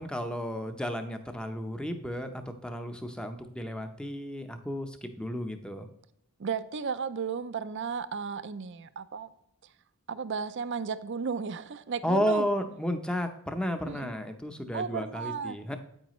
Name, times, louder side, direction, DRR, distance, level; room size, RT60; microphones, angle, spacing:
voice 1, 0.0-5.9 12.0-15.8, equal, 5° left, 7 dB, 0.7 m, -33 dB
voice 2, 6.4-9.3 10.1-12.5 13.9-14.1 14.7-15.6, right 6 dB, 55° right, 13 dB, 0.4 m, -34 dB
8.9 x 8.6 x 3.1 m, 0.73 s
head